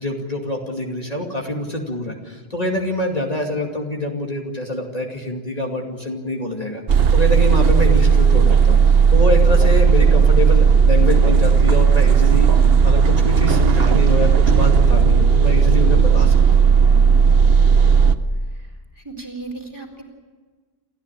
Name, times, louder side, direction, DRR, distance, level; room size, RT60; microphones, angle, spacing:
voice 1, 0.0-16.6, left 1 dB, 40° left, 1 dB, 2.5 m, -25 dB
sound 1, 6.9-18.1, right 6 dB, 75° right, 1.2 m, -14 dB
voice 2, 19.0-20.0, right 3 dB, 25° right, 2 dB, 3.8 m, -35 dB
28.5 x 14.0 x 8.9 m, 1.5 s
omnidirectional pair, 1.0 m